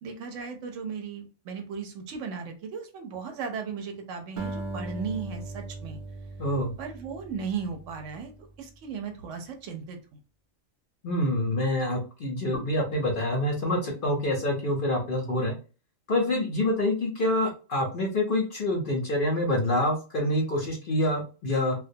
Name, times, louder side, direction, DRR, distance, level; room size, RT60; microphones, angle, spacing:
voice 1, 0.0-6.0 6.8-8.3 8.6-10.2, right 6 dB, 75° right, 5 dB, 0.9 m, -36 dB
Acoustic guitar, 4.4-8.8, right 2 dB, 60° right, 0.5 m, -39 dB
voice 2, 6.4-6.7 11.0-15.5 16.1-21.7, left 1 dB, 55° left, 0 dB, 0.6 m, -26 dB
2.2 x 2.2 x 2.6 m, 0.34 s
omnidirectional pair, 1.3 m